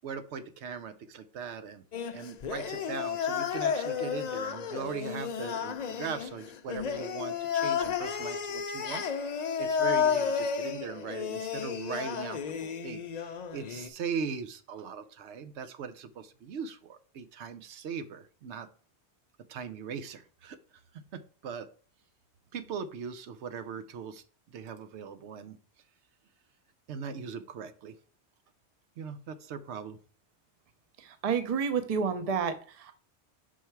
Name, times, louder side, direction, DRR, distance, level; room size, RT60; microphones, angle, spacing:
voice 1, 0.0-1.8 2.1-9.0 9.3-18.7 19.5-20.6 20.9-21.7 22.5-25.6 26.9-27.9 29.0-30.0, right 6 dB, 80° right, 0.9 m, -40 dB
sound 1, 1.9-13.9, left 7 dB, 50° left, 0.5 m, -32 dB
voice 2, 31.0-32.9, right 6 dB, 40° right, 0.7 m, -30 dB
5.6 x 4.6 x 4.5 m
omnidirectional pair, 1.2 m